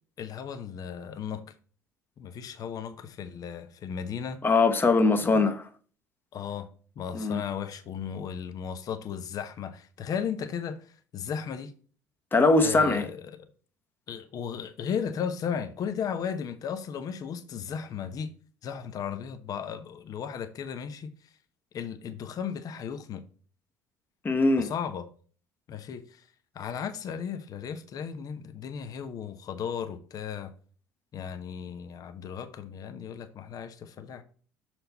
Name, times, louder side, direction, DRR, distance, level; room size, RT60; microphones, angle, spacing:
voice 1, 0.2-1.4 2.2-4.4 5.2-5.4 6.3-6.7 7.0-11.7 12.6-13.5 14.1-18.3 18.6-21.1 21.7-23.2 24.6-25.1 25.7-26.2 26.5-30.5 31.1-34.2, left 7 dB, 45° left, 0.8 m, -35 dB
voice 2, 4.4-5.7 7.1-7.4 12.3-13.1 24.2-24.7, left 3 dB, 25° left, 1.1 m, -22 dB
6.6 x 4.4 x 4.0 m
figure-of-eight pair, 60°, 9 cm